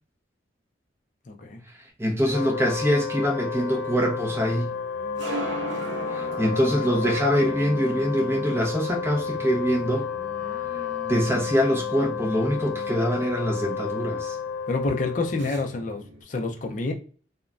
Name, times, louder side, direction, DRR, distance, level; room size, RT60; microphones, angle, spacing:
voice 1, 1.3-1.6 14.7-16.9, left 3 dB, 40° left, 0.4 m, -28 dB
voice 2, 2.0-4.8 6.1-10.1 11.0-14.4, equal, 15° right, 0.6 m, -24 dB
Wind instrument woodwind instrument, 2.2-15.6, left 6 dB, 80° left, 0.8 m, -32 dB
sound 1, 2.4-16.2, right 2 dB, 70° right, 0.5 m, -41 dB
Singing, 3.3-8.7 9.4-13.2, right 2 dB, 10° left, 1.4 m, -45 dB
3.0 x 2.1 x 2.4 m
head